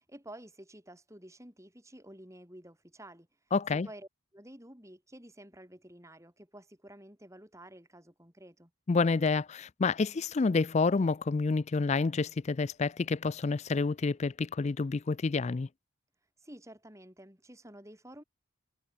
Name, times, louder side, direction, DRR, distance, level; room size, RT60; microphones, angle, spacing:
voice 1, 0.0-3.3 3.7-8.7 16.4-18.2, right 1 dB, 15° right, 6.5 m, -51 dB
voice 2, 3.5-3.9 8.9-15.7, left 4 dB, 30° left, 0.4 m, -28 dB
head